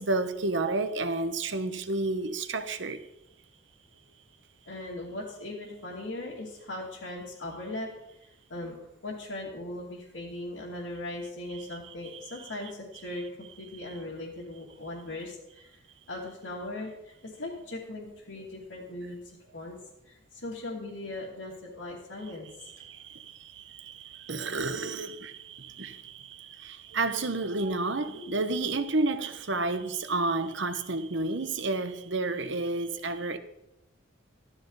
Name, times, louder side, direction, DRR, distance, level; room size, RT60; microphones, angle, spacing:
voice 1, 0.0-3.0 11.5-11.6 13.8-13.9 22.7-33.4, right 3 dB, 70° right, 9 dB, 1.0 m, -31 dB
voice 2, 4.7-7.9 8.5-15.7 16.1-19.8 20.1-22.5 28.1-28.3 32.9-33.2, left 2 dB, 80° left, -6 dB, 2.6 m, -39 dB
14.5 x 12.5 x 4.0 m, 0.86 s
head